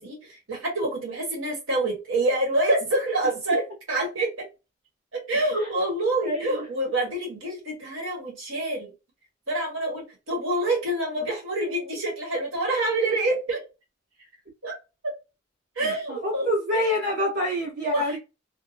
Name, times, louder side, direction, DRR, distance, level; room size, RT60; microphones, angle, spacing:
voice 1, 0.0-4.3 5.1-8.9 9.5-13.6 14.6-14.7 15.7-16.5 16.7-16.8 17.9-18.2, right 2 dB, 85° right, -1 dB, 1.3 m, -27 dB
voice 2, 6.2-6.6 16.1-18.2, left 1 dB, 55° right, -5 dB, 1.2 m, -26 dB
2.7 x 2.2 x 2.7 m, 0.28 s
head